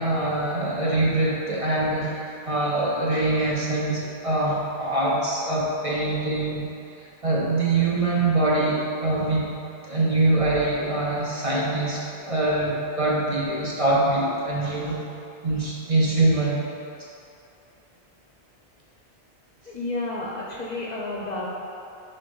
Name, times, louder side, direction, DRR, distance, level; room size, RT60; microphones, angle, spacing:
voice 1, 0.0-9.5 9.8-15.0 15.4-16.7, right 2 dB, 35° right, -6 dB, 0.8 m, -24 dB
voice 2, 19.6-21.5, left 2 dB, 45° left, -4 dB, 0.7 m, -31 dB
6.7 x 2.8 x 5.4 m, 2.7 s
omnidirectional pair, 1.1 m